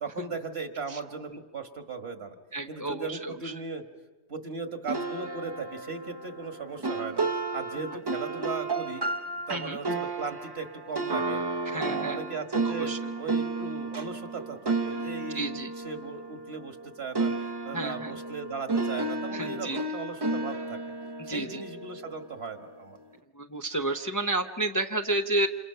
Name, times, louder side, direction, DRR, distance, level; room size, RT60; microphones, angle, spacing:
voice 1, 0.0-2.4 2.7-3.8 4.3-9.0 9.5-11.4 11.7-12.9 13.2-20.8 21.2-23.0, right 4 dB, 60° right, 6 dB, 1.8 m, -37 dB
voice 2, 2.5-3.5 7.8-7.9 9.5-9.8 11.7-12.2 12.6-13.0 15.3-15.7 17.7-18.2 19.3-19.8 21.2-21.6 23.3-25.5, right 2 dB, 20° left, 5 dB, 0.6 m, -31 dB
sound 1, 4.9-16.8 17.1-22.4, right 3 dB, 25° right, 0.7 m, -32 dB
27.5 x 27.5 x 5.6 m, 1.3 s
omnidirectional pair, 1.2 m